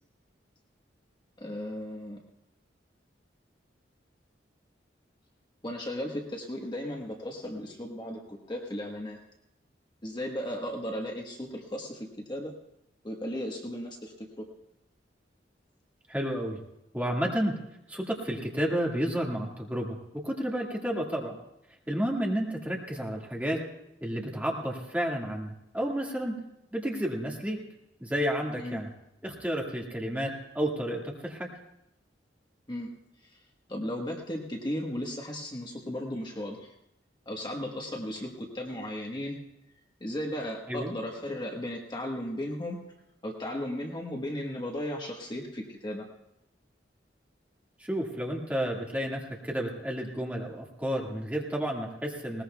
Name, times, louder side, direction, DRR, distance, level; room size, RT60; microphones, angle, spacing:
voice 1, 1.4-2.2 5.6-9.2 10.0-12.5 13.0-14.5 28.6-28.8 32.7-32.9 33.2-33.3 33.7-36.7 37.3-39.4 40.0-42.8 43.2-46.1, left 1 dB, 25° left, 1 dB, 1.2 m, -35 dB
voice 2, 16.1-16.6 16.9-17.5 17.9-21.4 21.9-23.6 24.0-26.3 26.7-27.6 28.0-28.9 29.2-31.5 40.7-40.9 47.8-52.4, equal, 10° right, -2 dB, 1.9 m, -31 dB
20.5 x 19.0 x 2.3 m, 0.85 s
head